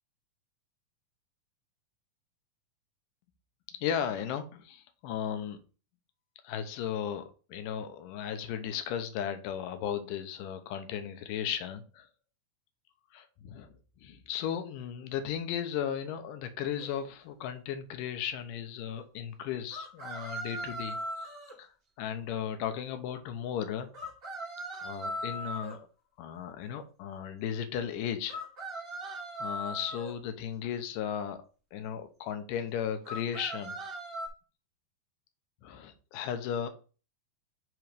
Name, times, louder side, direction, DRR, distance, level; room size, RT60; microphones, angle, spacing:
voice 1, 3.8-5.6 6.4-12.1 13.1-13.7 14.0-21.7 22.0-23.9 24.8-25.9 26.2-28.4 28.7-28.8 29.4-31.4 31.7-33.8 35.6-36.7, left 9 dB, 75° left, 8 dB, 2.3 m, -35 dB
sound 1, 16.8-16.9 19.7-21.6 23.9-25.7 28.3-30.1 33.0-34.3, equal, 45° right, 0.7 m, -39 dB
7.7 x 3.1 x 5.1 m, 0.36 s
omnidirectional pair, 4.1 m